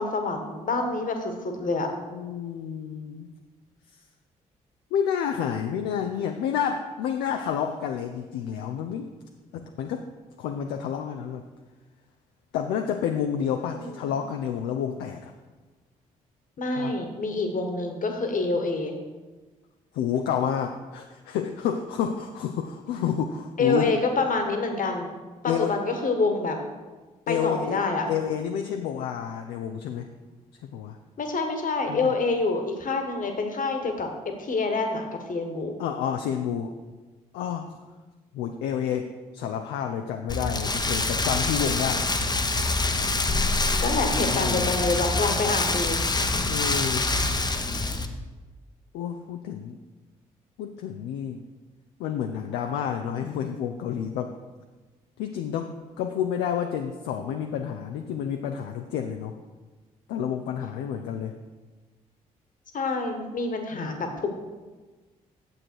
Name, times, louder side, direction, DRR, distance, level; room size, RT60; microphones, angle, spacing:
voice 1, 0.0-1.9 13.6-14.1 16.6-18.9 23.6-25.1 25.4-26.6 27.3-28.1 31.2-35.8 43.8-46.0 62.7-64.3, left 3 dB, 45° left, 4 dB, 1.5 m, -27 dB
voice 2, 2.1-3.3 4.9-9.1 9.5-10.0 10.4-11.5 12.5-15.3 16.8-16.9 19.9-23.9 25.5-25.7 27.3-27.8 28.1-30.1 30.6-31.0 31.9-32.1 35.8-36.7 37.3-37.7 38.3-42.1 44.1-44.7 46.4-47.1 48.9-49.8 50.6-51.4 52.0-54.3 55.2-59.3 60.1-61.3 63.7-64.2, left 8 dB, 65° left, 5 dB, 0.5 m, -29 dB
Rain, 40.3-48.1, left 2 dB, 20° left, 0.9 m, -25 dB
9.0 x 7.4 x 4.6 m, 1.3 s
figure-of-eight pair, 40°, 18 cm